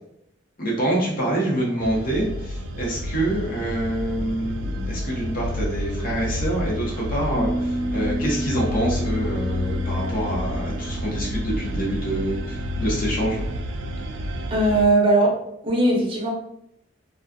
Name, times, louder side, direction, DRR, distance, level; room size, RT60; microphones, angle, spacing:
voice 1, 0.6-13.5, right 1 dB, 50° left, -4 dB, 0.8 m, -26 dB
sound 1, 1.8-14.8, left 1 dB, 90° right, 0.3 m, -29 dB
Bass guitar, 7.4-13.6, right 1 dB, 85° left, 0.9 m, -32 dB
voice 2, 14.5-15.3 15.6-16.3, right 2 dB, 30° right, -2 dB, 0.6 m, -19 dB
2.3 x 2.3 x 2.5 m, 0.76 s
head